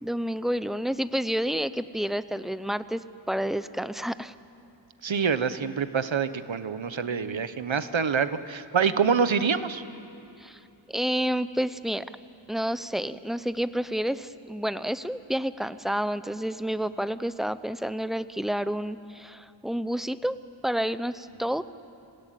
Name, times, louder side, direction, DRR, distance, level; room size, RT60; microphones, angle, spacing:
voice 1, 0.0-3.0 3.3-4.3 10.4-10.6 10.9-12.1 12.5-20.4 20.6-21.6, equal, ahead, 13 dB, 0.8 m, -29 dB
voice 2, 5.0-9.8, right 6 dB, 70° right, 12 dB, 1.1 m, -26 dB
27.5 x 18.0 x 9.2 m, 2.9 s
wide cardioid pair, 40°, 47 cm